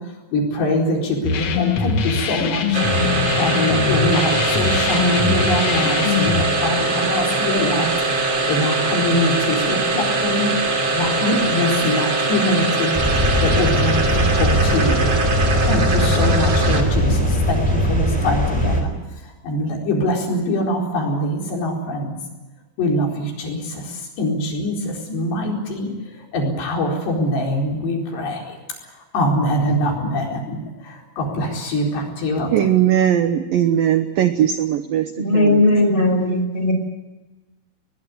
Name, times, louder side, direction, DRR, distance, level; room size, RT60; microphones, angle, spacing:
voice 1, 0.0-7.9 8.2-10.5 10.9-13.0 13.4-15.1 15.7-22.2 22.8-28.6 28.8-32.5, left 1 dB, 60° left, 0 dB, 6.4 m, -23 dB
sound 1, 1.2-6.5, left 6 dB, 80° left, 1.4 m, -22 dB
sound 2, 2.7-17.1, right 3 dB, 30° right, 2.9 m, -22 dB
sound 3, 12.9-18.8, equal, 5° right, 3.4 m, -20 dB
voice 2, 32.5-35.6, right 10 dB, 80° right, 9 dB, 2.1 m, -19 dB
voice 3, 35.2-36.7, left 1 dB, 10° left, 5 dB, 4.6 m, -17 dB
21.5 x 20.5 x 9.6 m, 1.2 s
omnidirectional pair, 5.5 m